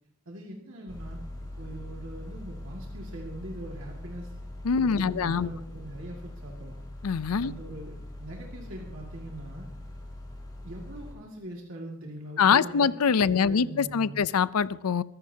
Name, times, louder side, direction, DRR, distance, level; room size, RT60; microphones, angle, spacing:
voice 1, 0.3-4.3 4.8-6.8 7.4-9.7 10.6-13.0 13.2-14.2, right 1 dB, 60° right, 2.1 m, -42 dB
sound 1, 0.9-11.1, left 1 dB, 20° left, 3.6 m, -42 dB
voice 2, 4.6-5.5 7.0-7.5 12.4-15.0, left 6 dB, 80° left, 0.5 m, -24 dB
24.5 x 14.5 x 2.8 m
head